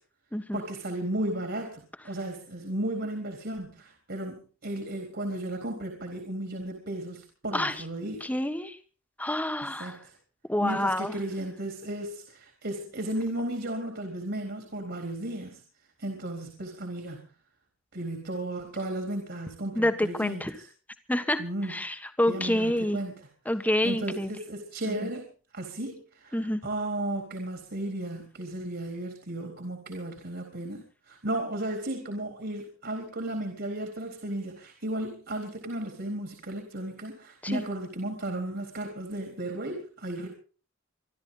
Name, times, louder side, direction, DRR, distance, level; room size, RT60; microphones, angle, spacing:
voice 1, 0.5-8.3 9.6-10.1 10.6-15.6 16.0-17.2 17.9-20.4 21.4-21.7 22.3-23.1 23.8-25.3 25.5-40.3, right 1 dB, 60° right, 3 dB, 4.0 m, -34 dB
voice 2, 8.2-8.8 9.2-10.0 10.5-11.1 19.7-20.5 21.1-21.4 21.7-23.0 23.4-24.3 24.9-25.1 26.3-26.6 37.4-37.7, left 1 dB, 10° left, 9 dB, 1.4 m, -27 dB
25.5 x 12.5 x 4.0 m, 0.39 s
head